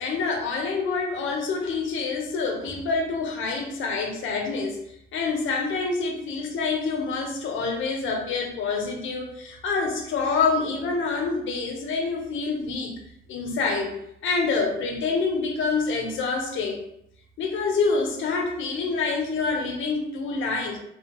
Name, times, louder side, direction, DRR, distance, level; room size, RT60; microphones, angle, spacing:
voice 1, 0.0-4.8 5.1-12.9 13.3-13.9 14.2-16.8 17.4-20.8, left 4 dB, 80° left, 1 dB, 0.8 m, -27 dB
3.4 x 2.4 x 2.9 m, 0.74 s
cardioid pair, 90°, 20 cm